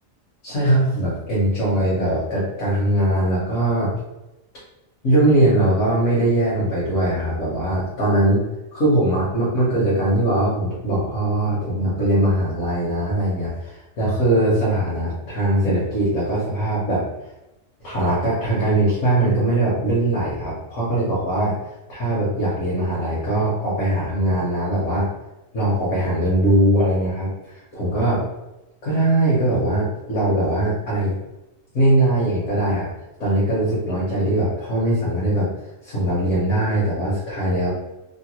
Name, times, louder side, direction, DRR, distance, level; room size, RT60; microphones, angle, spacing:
voice 1, 0.4-3.9 5.0-8.4 8.7-17.0 17.8-21.5 21.9-25.1 25.5-27.3 27.7-28.2 28.8-31.2 31.7-32.9 33.2-35.5 35.8-37.7, right 1 dB, 75° left, -8 dB, 1.4 m, -21 dB
3.1 x 2.1 x 2.9 m, 0.96 s
omnidirectional pair, 1.4 m